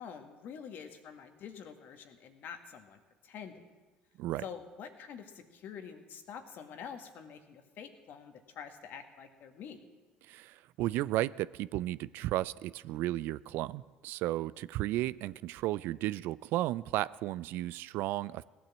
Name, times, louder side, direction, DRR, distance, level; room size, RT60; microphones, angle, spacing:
voice 1, 0.0-3.6 4.4-9.8, left 7 dB, 55° left, 6 dB, 1.8 m, -47 dB
voice 2, 10.3-18.4, right 15 dB, 60° right, 19 dB, 0.4 m, -34 dB
17.5 x 9.0 x 7.4 m, 1.3 s
hypercardioid pair, 65°, 4 cm